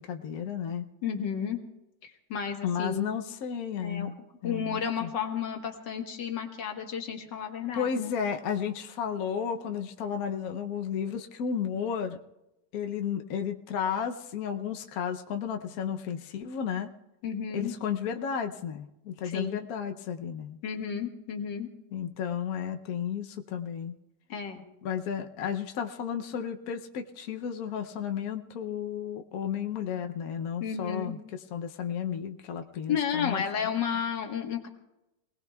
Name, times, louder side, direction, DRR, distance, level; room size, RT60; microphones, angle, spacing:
voice 1, 0.0-0.9 2.6-4.2 4.4-5.1 7.7-12.2 12.7-16.9 17.5-20.6 21.9-23.9 24.8-33.4, left 8 dB, 65° left, 5 dB, 1.2 m, -33 dB
voice 2, 1.0-1.6 2.0-3.2 3.8-4.1 4.4-8.1 17.2-17.7 19.3-19.6 20.6-21.7 24.3-24.6 30.6-31.1 32.9-34.7, left 7 dB, 90° left, 3 dB, 2.1 m, -32 dB
27.0 x 19.0 x 2.3 m, 0.92 s
omnidirectional pair, 1.9 m